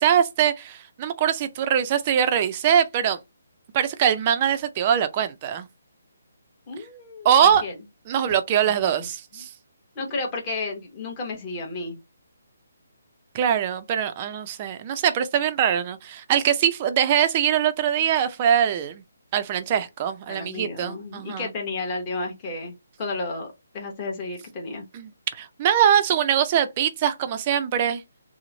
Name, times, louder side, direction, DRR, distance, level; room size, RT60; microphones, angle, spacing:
voice 1, 0.0-3.2 3.7-5.7 7.2-7.6 8.1-9.5 13.3-19.0 19.3-21.5 24.9-28.0, right 9 dB, 25° right, 0.4 m, -22 dB
voice 2, 6.7-7.7 9.4-9.5 10.0-12.0 20.3-23.5 23.7-24.8, left 3 dB, 25° left, 0.9 m, -32 dB
3.0 x 2.0 x 3.7 m
hypercardioid pair, 165°, 0 cm